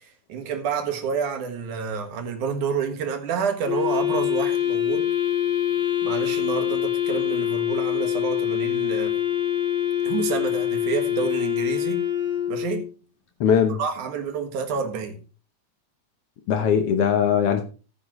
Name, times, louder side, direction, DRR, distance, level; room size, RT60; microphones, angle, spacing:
voice 1, 0.0-5.1 6.0-9.2 10.0-12.1 12.5-12.9 13.7-15.2, right 6 dB, 80° right, 3.1 m, -29 dB
Wind instrument woodwind instrument, 3.6-12.9, left 11 dB, 30° left, 1.1 m, -25 dB
voice 2, 13.4-13.8 16.5-17.6, left 7 dB, 65° left, 1.6 m, -20 dB
14.5 x 8.8 x 3.1 m
omnidirectional pair, 3.5 m